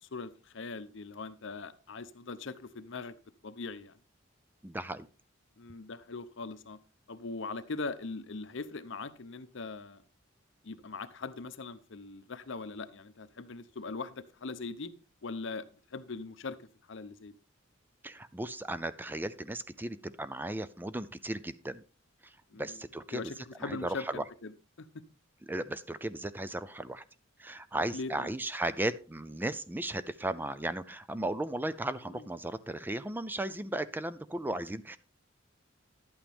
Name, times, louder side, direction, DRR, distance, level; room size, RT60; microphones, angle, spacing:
voice 1, 0.0-3.1 3.4-4.0 5.6-6.8 7.1-10.0 10.6-14.9 15.2-15.6 15.9-17.4 22.5-22.8 23.1-24.5 24.8-25.0 27.9-28.3 32.1-32.2, left 3 dB, 65° left, 13 dB, 0.7 m, -41 dB
voice 2, 4.6-5.1 18.0-21.8 22.2-24.2 25.5-27.0 27.4-35.0, right 1 dB, 10° right, 14 dB, 0.4 m, -36 dB
11.5 x 8.7 x 3.5 m, 0.35 s
head